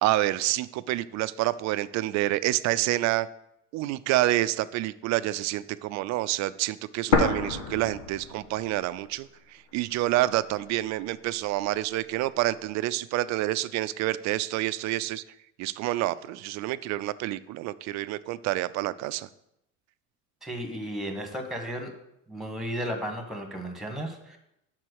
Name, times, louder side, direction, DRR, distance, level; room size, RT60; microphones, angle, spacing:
voice 1, 0.0-3.3 3.7-15.2 15.6-19.3, right 16 dB, 50° right, 16 dB, 0.4 m, -28 dB
sound 1, 7.1-9.1 9.4-9.5 10.2-11.1, left 3 dB, 85° left, 1.5 m, -28 dB
voice 2, 20.4-21.9 22.3-24.4, equal, ahead, 4 dB, 1.4 m, -34 dB
6.0 x 4.5 x 6.4 m, 0.81 s
supercardioid pair, 95°, 38 cm